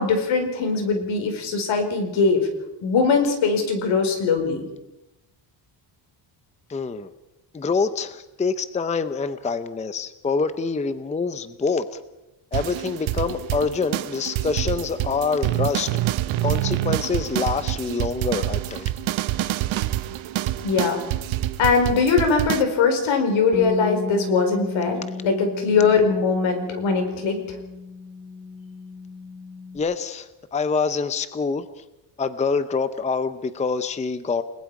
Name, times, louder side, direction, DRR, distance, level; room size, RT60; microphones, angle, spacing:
voice 1, 0.0-2.5 2.8-4.6 20.6-21.0 21.6-27.4, left 4 dB, 75° left, 5 dB, 4.8 m, -21 dB
voice 2, 6.7-7.1 7.5-12.0 12.5-15.9 16.4-18.9 29.7-31.8 32.2-34.4, left 4 dB, 15° left, 12 dB, 0.7 m, -26 dB
sound 1, 12.5-22.6, right 14 dB, 85° right, 1.0 m, -27 dB
Bass guitar, 23.5-29.8, left 4 dB, 35° left, 4.1 m, -34 dB
30.0 x 20.0 x 4.8 m, 0.98 s
cardioid pair, 165°, 47 cm